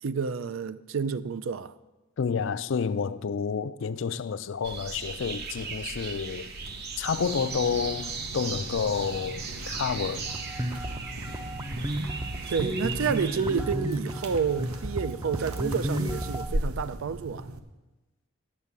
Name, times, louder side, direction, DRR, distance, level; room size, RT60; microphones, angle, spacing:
voice 1, 0.0-1.7 11.7-11.8 12.5-17.5, right 6 dB, 65° right, 0.4 m, -30 dB
voice 2, 2.2-6.5 7.0-10.3, left 6 dB, 60° left, 0.4 m, -29 dB
sound 1, 4.6-13.4, right 4 dB, 50° right, 0.9 m, -37 dB
sound 2, 7.1-17.6, right 1 dB, 85° right, 0.8 m, -39 dB
sound 3, 10.3-16.5, right 1 dB, 15° right, 0.5 m, -33 dB
8.8 x 7.3 x 8.1 m
head